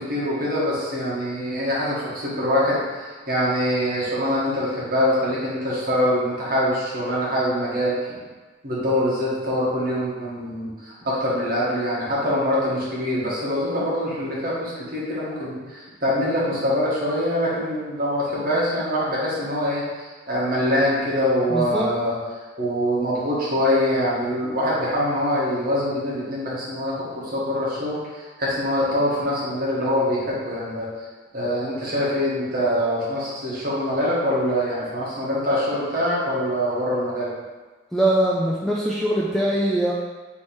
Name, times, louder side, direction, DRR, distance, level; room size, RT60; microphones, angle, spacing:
voice 1, 0.0-8.2 8.6-22.2 22.6-30.9 31.3-37.3, equal, 50° right, -7 dB, 1.3 m, -24 dB
voice 2, 21.5-21.9 37.9-39.9, right 1 dB, ahead, -5 dB, 0.3 m, -22 dB
3.2 x 3.1 x 4.3 m, 1.3 s
head